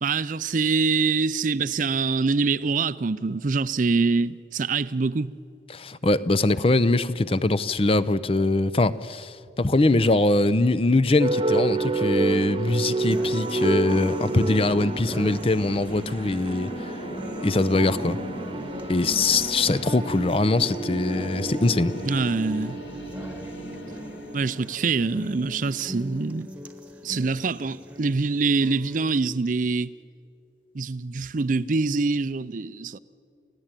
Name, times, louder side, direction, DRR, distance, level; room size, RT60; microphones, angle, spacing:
voice 1, 0.0-5.3 22.0-22.8 24.3-26.5 27.0-29.9 30.7-33.0, right 4 dB, 45° right, 0.5 m, -25 dB
voice 2, 5.7-16.9 17.4-18.2 18.9-21.9, left 2 dB, 30° left, 0.6 m, -22 dB
sound 1, 11.0-26.0, equal, 70° left, 2.2 m, -39 dB
sound 2, 11.2-24.6, right 3 dB, 30° right, 1.1 m, -30 dB
sound 3, 13.1-29.1, equal, 10° right, 1.3 m, -42 dB
29.5 x 16.5 x 9.0 m
head